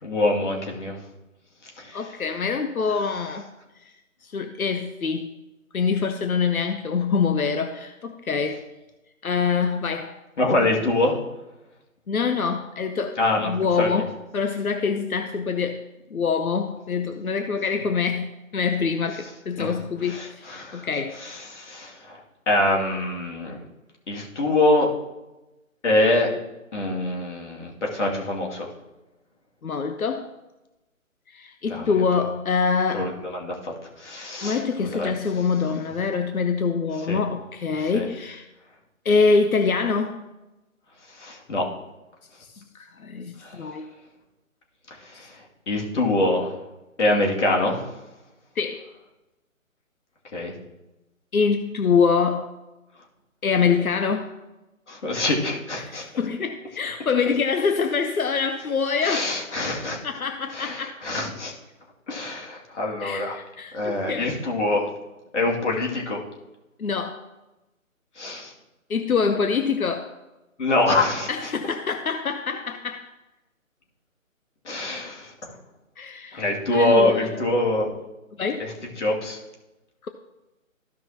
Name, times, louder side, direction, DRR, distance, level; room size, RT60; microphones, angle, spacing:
voice 1, 0.0-1.0 1.8-2.2 10.4-11.2 13.2-14.0 19.6-19.8 20.0-20.9 21.1-23.6 24.1-24.9 25.8-26.3 26.7-28.7 31.7-31.9 32.9-35.1 37.1-37.2 37.8-38.1 41.1-41.7 43.4-43.6 45.0-46.5 47.0-47.9 50.3-50.5 54.9-56.0 59.0-60.0 60.5-61.5 62.1-63.4 63.7-64.9 65.3-66.2 68.2-68.5 70.6-71.5 74.6-75.5 76.3-77.9 78.6-79.4, left 2 dB, 55° left, -1 dB, 2.6 m, -25 dB
voice 2, 1.9-3.5 3.8-3.9 4.2-5.3 5.7-8.6 9.2-10.2 12.1-15.8 16.1-21.2 29.6-30.3 31.3-33.1 34.4-38.5 39.0-40.2 42.4-43.9 45.2-45.3 48.6-48.9 51.3-52.5 53.4-54.4 55.8-59.3 60.0-61.0 63.0-64.4 66.8-67.2 68.9-70.1 71.3-73.0 76.0-77.4 78.4-78.6 80.0-80.1, left 5 dB, 90° left, 7 dB, 0.8 m, -25 dB
14.5 x 5.6 x 2.9 m, 1.0 s
figure-of-eight pair, 155°, 41 cm